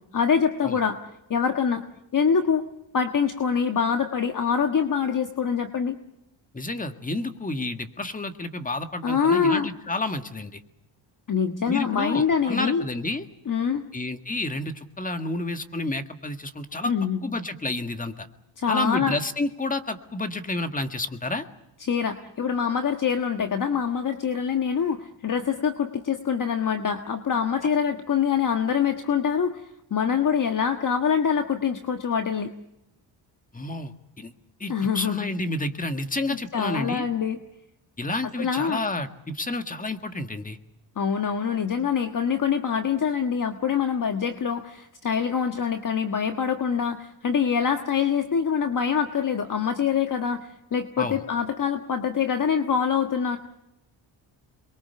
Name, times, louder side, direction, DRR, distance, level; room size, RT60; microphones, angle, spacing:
voice 1, 0.1-1.0 1.3-1.8 2.1-2.7 2.9-6.0 9.0-9.7 11.3-12.8 13.5-13.8 16.8-17.3 18.6-19.2 21.8-29.6 29.9-32.5 34.7-35.3 36.5-37.4 38.4-38.8 41.0-53.4, left 7 dB, 45° left, 6 dB, 1.5 m, -25 dB
voice 2, 6.5-10.6 11.7-13.3 13.9-16.9 17.2-18.3 18.7-21.5 33.5-34.3 34.6-37.0 38.0-40.6 51.0-51.2, left 2 dB, 15° left, 8 dB, 1.8 m, -30 dB
28.0 x 22.5 x 6.9 m, 0.85 s
cardioid pair, 130°, 46 cm